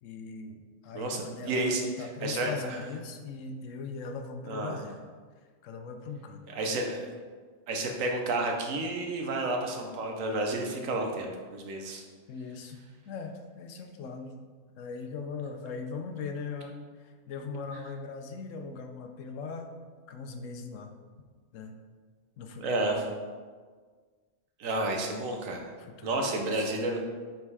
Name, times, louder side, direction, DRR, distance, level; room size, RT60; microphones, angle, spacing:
voice 1, 0.0-4.9 5.6-6.4 12.3-14.4 14.8-19.7 20.1-20.9 21.5-21.7 22.4-22.9 25.7-26.7, left 4 dB, 75° left, 5 dB, 1.0 m, -40 dB
voice 2, 0.9-2.8 4.4-4.8 6.5-7.0 7.7-12.0 22.6-23.0 24.6-25.6 26.0-27.1, right 2 dB, 85° right, 2 dB, 1.3 m, -31 dB
5.4 x 4.3 x 4.7 m, 1.5 s
omnidirectional pair, 1.3 m